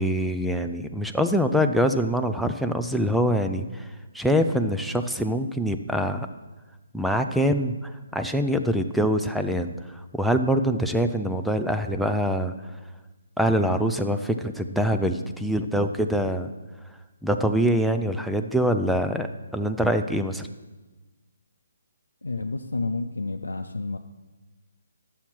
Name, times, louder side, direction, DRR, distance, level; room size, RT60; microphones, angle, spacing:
voice 1, 0.0-3.9 4.1-6.3 6.9-9.7 10.1-12.5 13.4-16.5 17.2-19.3 19.5-20.5, equal, ahead, 6 dB, 0.4 m, -24 dB
voice 2, 22.2-24.0, left 3 dB, 90° left, 3 dB, 0.6 m, -30 dB
11.0 x 7.2 x 4.5 m, 1.2 s
figure-of-eight pair, 150°, 0 cm